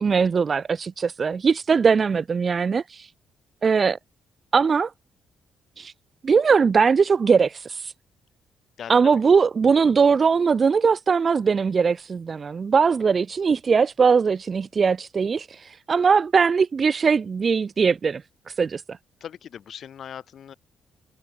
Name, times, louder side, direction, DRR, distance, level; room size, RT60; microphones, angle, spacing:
voice 1, 0.0-3.1 3.6-4.0 4.5-4.9 5.8-5.9 6.2-7.9 8.9-18.2 18.6-18.8, right 5 dB, 40° right, 0.8 m, -20 dB
voice 2, 8.8-9.2 19.2-20.5, left 9 dB, 60° left, 6.3 m, -39 dB
cardioid pair, 90°, 0 cm